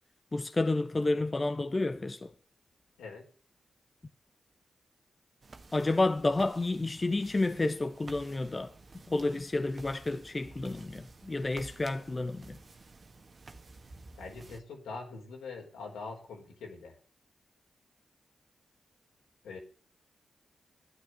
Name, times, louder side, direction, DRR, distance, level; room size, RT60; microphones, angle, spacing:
voice 1, 0.3-2.3 5.7-8.7 9.1-12.6, left 2 dB, 35° left, 1.1 m, -30 dB
sound 1, 5.4-14.6, right 3 dB, 50° right, 1.7 m, -52 dB
voice 2, 14.2-17.0 19.4-19.6, left 4 dB, 90° left, 4.5 m, -43 dB
11.5 x 9.7 x 9.3 m
supercardioid pair, 40°, 0 cm